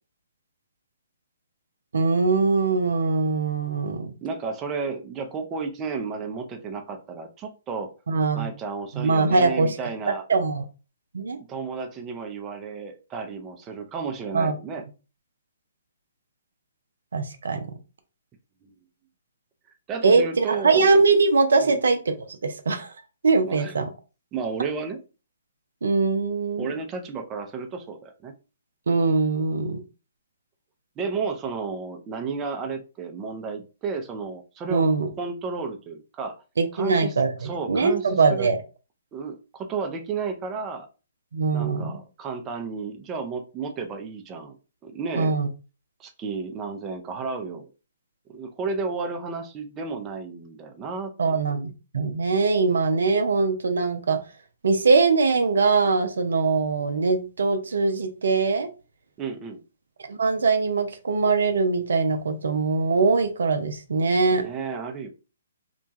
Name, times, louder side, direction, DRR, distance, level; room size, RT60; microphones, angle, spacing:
voice 1, 1.9-4.1 8.1-8.5 8.9-9.7 10.3-10.6 11.1-11.4 14.3-14.5 17.1-17.7 20.0-22.2 22.4-22.9 23.2-23.9 25.8-26.7 28.9-29.8 34.7-35.1 36.6-38.6 41.3-41.9 45.2-45.5 51.2-54.2 54.6-58.7 60.1-64.4, right 4 dB, 75° right, 7 dB, 0.5 m, -22 dB
voice 2, 4.2-7.9 8.3-10.3 11.4-14.9 18.6-18.7 19.9-21.0 21.6-21.8 23.5-23.8 24.3-25.0 26.6-28.3 31.0-34.9 35.2-36.4 36.7-37.1 37.4-38.5 39.1-40.9 41.5-44.6 44.8-45.4 46.0-47.7 48.3-51.1 59.2-59.6 64.3-65.1, right 5 dB, 20° right, 5 dB, 0.5 m, -32 dB
2.9 x 2.2 x 2.6 m, 0.32 s
hypercardioid pair, 130°, 0 cm